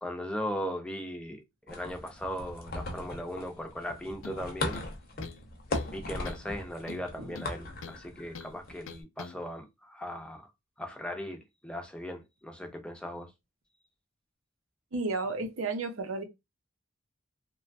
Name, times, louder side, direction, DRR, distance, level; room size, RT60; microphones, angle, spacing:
voice 1, 0.0-1.4 1.7-4.8 5.8-10.4 10.8-13.3, equal, 5° left, 0.5 m, -38 dB
sound 1, 1.7-9.0, left 2 dB, 45° left, 0.7 m, -39 dB
sound 2, 4.2-4.4 4.7-5.5 5.7-6.0 6.3-6.5 6.9-8.0 8.4-8.5 8.9-9.4, left 5 dB, 80° left, 0.4 m, -44 dB
voice 2, 14.9-16.2, right 3 dB, 90° right, 0.7 m, -32 dB
2.9 x 2.3 x 2.5 m
head